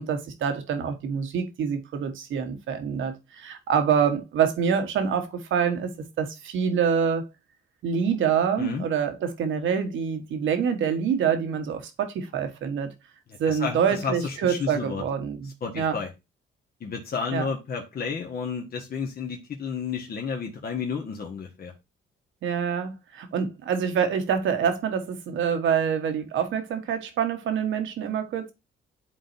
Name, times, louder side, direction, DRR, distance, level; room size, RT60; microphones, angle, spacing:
voice 1, 0.0-7.2 7.8-12.9 13.4-16.0 17.3-17.5 22.4-28.5, right 7 dB, 75° right, 1.3 m, -26 dB
voice 2, 13.3-15.0 15.6-16.1 16.8-21.7, left 5 dB, 50° left, 1.3 m, -32 dB
11.0 x 4.0 x 2.7 m
cardioid pair, 90°, 20 cm